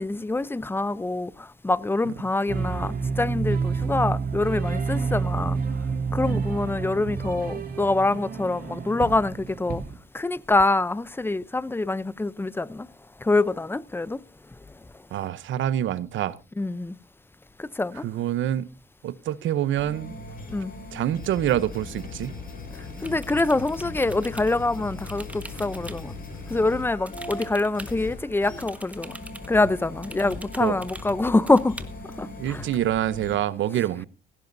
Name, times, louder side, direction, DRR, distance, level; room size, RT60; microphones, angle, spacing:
voice 1, 0.0-5.6 6.1-9.8 10.1-12.9 13.2-14.2 16.6-16.9 17.6-18.0 20.5-20.7 23.0-26.2 26.5-29.2 29.5-31.8 32.2-32.6, left 2 dB, 10° left, 0.6 m, -25 dB
sound 1, 2.5-9.9, right 5 dB, 50° right, 2.8 m, -29 dB
voice 2, 15.1-16.4 18.0-18.7 19.0-20.2 20.9-22.3 30.2-30.3 30.6-30.8 32.4-34.1, right 11 dB, 75° right, 0.8 m, -26 dB
sound 2, 19.7-33.4, left 3 dB, 45° left, 4.9 m, -39 dB
sound 3, 23.0-24.5 25.0-26.0 27.1-28.0 28.6-29.5 30.0-31.1 31.5-31.8, right 1 dB, 5° right, 1.4 m, -43 dB
17.5 x 16.0 x 2.7 m
cardioid pair, 90°, 20 cm